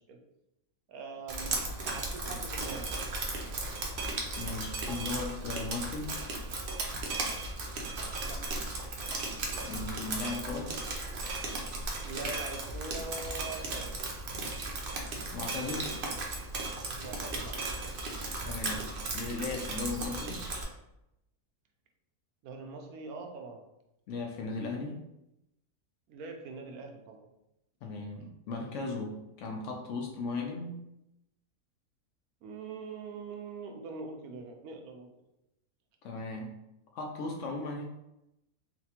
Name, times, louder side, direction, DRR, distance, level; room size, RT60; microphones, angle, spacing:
voice 1, 0.9-2.9 8.2-8.4 12.0-13.9 17.0-17.6 22.4-23.6 26.1-27.2 32.4-35.1, right 3 dB, 80° right, 3 dB, 1.1 m, -43 dB
Drip, 1.3-20.6, right 2 dB, 60° right, 0.8 m, -36 dB
voice 2, 4.4-6.2 9.6-10.7 15.3-16.0 18.5-18.9 19.1-20.4 24.1-25.0 27.8-30.8 36.0-36.5 36.9-37.8, left 3 dB, 70° left, 1 dB, 0.8 m, -37 dB
4.1 x 2.2 x 2.8 m, 0.87 s
omnidirectional pair, 1.5 m